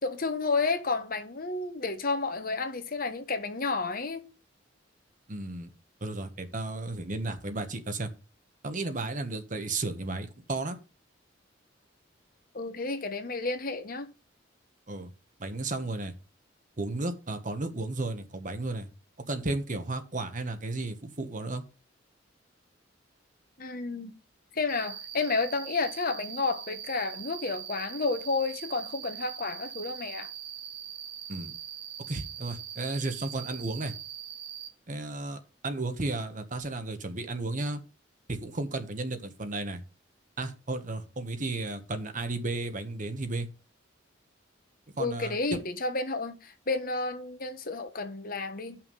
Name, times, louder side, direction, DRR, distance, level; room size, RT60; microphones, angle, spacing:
voice 1, 0.0-4.2 12.5-14.1 23.6-24.1 24.5-30.3 45.0-48.8, left 3 dB, 50° left, 1.2 m, -31 dB
voice 2, 5.3-5.7 6.0-8.1 8.6-10.8 14.9-15.1 15.4-16.1 16.8-18.9 19.3-21.6 31.3-31.5 32.1-33.9 34.9-37.8 38.3-39.8 40.4-43.5 45.0-45.6, right 2 dB, 45° right, 1.2 m, -33 dB
Cricket, 24.7-34.7, right 9 dB, 60° right, 1.3 m, -42 dB
9.2 x 5.9 x 5.4 m
head